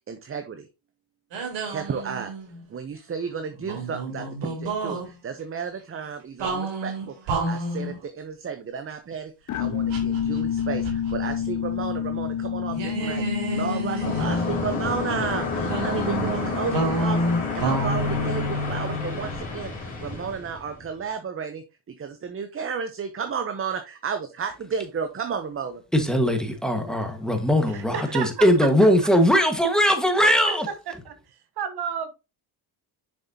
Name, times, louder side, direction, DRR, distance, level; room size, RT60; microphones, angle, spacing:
voice 1, 0.1-0.7 1.7-2.3 2.7-25.8, right 6 dB, 30° right, 0.8 m, -33 dB
sound 1, 1.3-2.6 3.6-5.1 6.4-8.0 9.9-11.4 11.6-11.8 12.7-14.8 15.6-19.4, right 1 dB, 75° right, 3.3 m, -29 dB
sound 2, 9.5-18.7, left 9 dB, 40° left, 0.6 m, -30 dB
sound 3, 14.0-20.9, left 2 dB, 20° left, 3.5 m, -31 dB
voice 2, 25.9-30.7, equal, ahead, 1.6 m, -20 dB
voice 3, 27.7-28.5 30.2-30.5 31.0-32.1, right 7 dB, 60° right, 1.2 m, -32 dB
7.0 x 6.3 x 2.8 m
cardioid pair, 100°, 45 cm